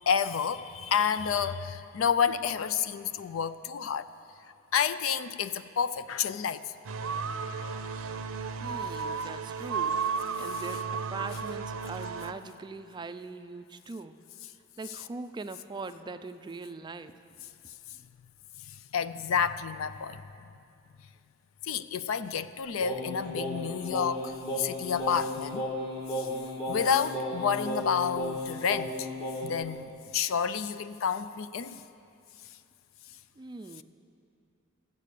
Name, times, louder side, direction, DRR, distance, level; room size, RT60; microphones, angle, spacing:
voice 1, 0.1-4.1 4.7-6.6 10.5-10.6 14.9-15.0 18.7-20.2 21.6-25.7 26.2-26.3 26.7-29.1 29.4-31.8, left 7 dB, 75° left, 0.4 m, -30 dB
sound 1, 6.8-12.3, right 5 dB, 90° right, 0.6 m, -33 dB
voice 2, 8.6-10.0 10.4-14.2 14.8-17.1 33.4-33.8, right 3 dB, 20° right, 0.3 m, -41 dB
Singing, 22.8-29.6, left 1 dB, 25° left, 1.6 m, -34 dB
13.5 x 8.2 x 6.7 m
head